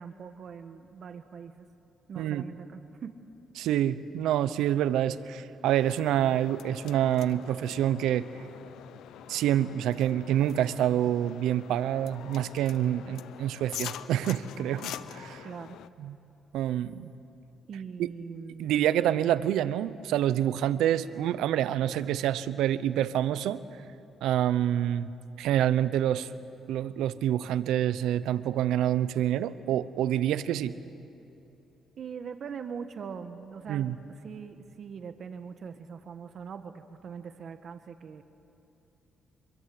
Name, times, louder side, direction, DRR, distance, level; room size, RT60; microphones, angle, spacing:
voice 1, 0.0-1.7 2.1-3.1 15.4-15.8 17.7-18.8 32.0-38.2, right 6 dB, 55° right, 8 dB, 1.4 m, -42 dB
voice 2, 3.6-8.3 9.3-15.5 16.0-16.2 16.5-17.1 18.6-23.6 24.2-25.1 25.4-26.3 26.7-30.7 33.7-34.0, right 11 dB, 85° right, 14 dB, 0.8 m, -27 dB
sound 1, 5.6-15.9, left 11 dB, 85° left, 0.6 m, -44 dB
26.0 x 22.5 x 7.8 m, 2.9 s
cardioid pair, 90°, 0 cm